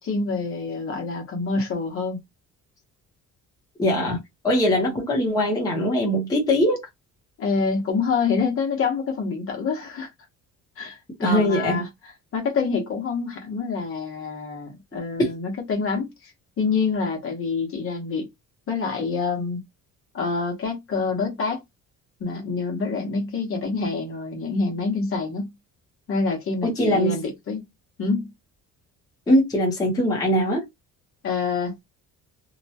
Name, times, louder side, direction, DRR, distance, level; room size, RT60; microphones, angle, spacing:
voice 1, 0.0-2.2 7.4-10.1 10.8-11.9 12.3-16.3 16.6-18.3 18.7-19.6 20.1-21.6 22.2-25.5 26.1-27.6 28.0-28.3 31.2-31.8, left 4 dB, 40° left, 0.9 m, -26 dB
voice 2, 3.8-6.9 11.2-11.8 15.2-15.3 26.6-27.2 29.3-30.7, equal, 10° left, 0.7 m, -21 dB
2.8 x 2.2 x 2.7 m
cardioid pair, 165°, 32 cm